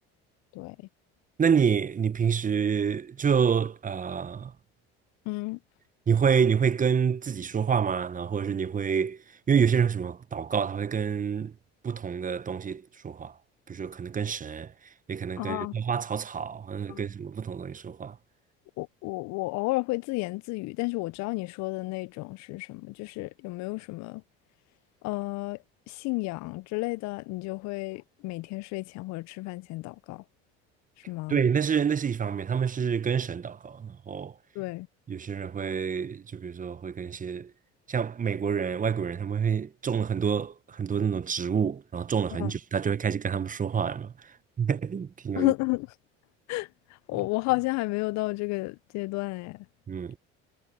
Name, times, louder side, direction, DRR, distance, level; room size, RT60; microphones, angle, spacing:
voice 1, 0.5-0.9 5.3-5.6 15.4-15.8 16.9-17.0 18.8-24.2 25.0-30.2 31.1-31.4 34.5-34.9 42.3-42.5 45.4-45.9 46.5-49.7, left 23 dB, 65° left, 0.6 m, -32 dB
voice 2, 1.4-4.5 6.1-9.2 9.5-11.5 11.8-13.3 13.7-14.7 15.1-18.2 31.3-34.3 35.1-37.5 37.9-44.1 44.6-45.5 49.9-50.2, right 7 dB, 25° right, 0.9 m, -27 dB
supercardioid pair, 80°, 30 cm